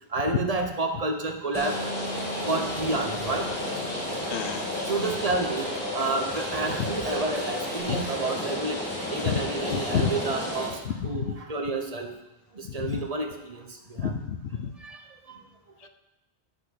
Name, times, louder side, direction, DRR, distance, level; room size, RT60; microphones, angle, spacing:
voice 1, 0.1-1.8 2.4-3.5 4.8-8.8 9.1-12.1 12.5-14.2 14.8-15.0 15.3-15.4, right 2 dB, 40° right, 4 dB, 1.0 m, -30 dB
Rain, 1.5-10.7, left 1 dB, 65° left, 2.6 m, -32 dB
Bass guitar, 1.6-6.3 6.6-7.8, right 1 dB, ahead, 1.3 m, -43 dB
voice 2, 4.3-4.6 7.9-8.0 9.3-9.4 9.9-10.1 11.0-11.3 12.8-13.0 14.0-14.7, left 8 dB, 90° left, 9 dB, 0.9 m, -29 dB
7.9 x 5.4 x 6.3 m, 0.97 s
omnidirectional pair, 1.1 m